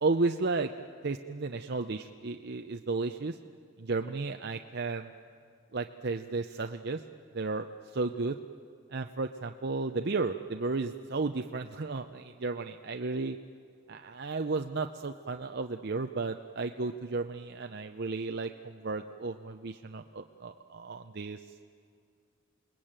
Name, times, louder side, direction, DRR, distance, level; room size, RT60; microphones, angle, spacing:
voice 1, 0.0-0.7 1.0-3.4 3.8-5.1 5.7-7.0 7.3-7.7 7.9-8.4 8.9-13.4 13.9-21.4, right 3 dB, 55° right, 5 dB, 0.7 m, -33 dB
28.5 x 20.5 x 8.9 m, 2.3 s
head